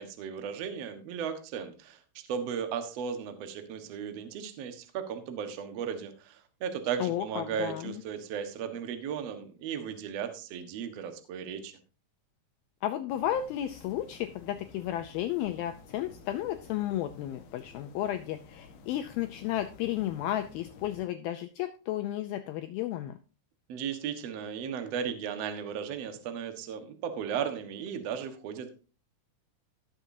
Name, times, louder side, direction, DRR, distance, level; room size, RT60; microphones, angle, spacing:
voice 1, 0.0-2.0 2.3-11.7 23.7-28.7, right 7 dB, 70° right, 7 dB, 1.5 m, -36 dB
voice 2, 7.0-8.0 12.8-23.2, left 12 dB, 85° left, 9 dB, 2.1 m, -33 dB
sound 1, 13.1-21.1, left 5 dB, 65° left, 2.8 m, -53 dB
17.0 x 7.2 x 2.7 m, 0.34 s
omnidirectional pair, 5.0 m